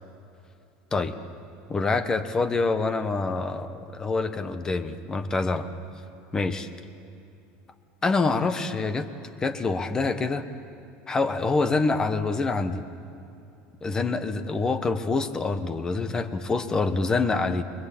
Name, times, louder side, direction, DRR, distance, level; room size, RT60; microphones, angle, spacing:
voice 1, 1.7-5.7 6.3-6.7 8.0-9.1 9.4-10.4 11.1-12.8 13.8-17.6, left 3 dB, 15° left, 10 dB, 1.2 m, -26 dB
29.5 x 22.0 x 8.7 m, 2.7 s
cardioid pair, 155°, 4 cm